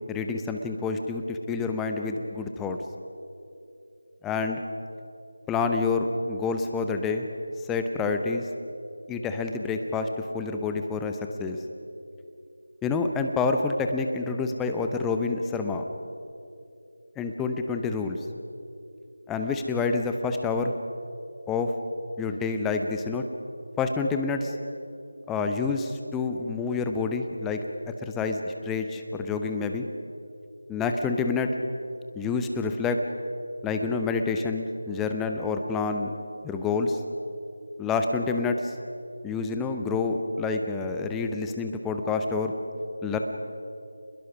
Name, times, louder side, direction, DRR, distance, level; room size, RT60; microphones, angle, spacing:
voice 1, 0.1-1.2 1.5-2.8 4.2-4.6 5.5-7.3 7.7-8.5 9.1-10.1 10.3-11.6 12.8-15.8 17.2-18.2 19.3-20.7 21.5-21.7 22.2-23.3 23.8-24.5 25.3-29.8 30.7-31.5 32.1-33.0 33.6-36.1 36.4-37.0 37.8-38.7 39.2-42.5 43.0-43.2, left 4 dB, 5° left, 5 dB, 0.8 m, -28 dB
27.5 x 21.5 x 6.1 m, 2.7 s
figure-of-eight pair, 165°, 0 cm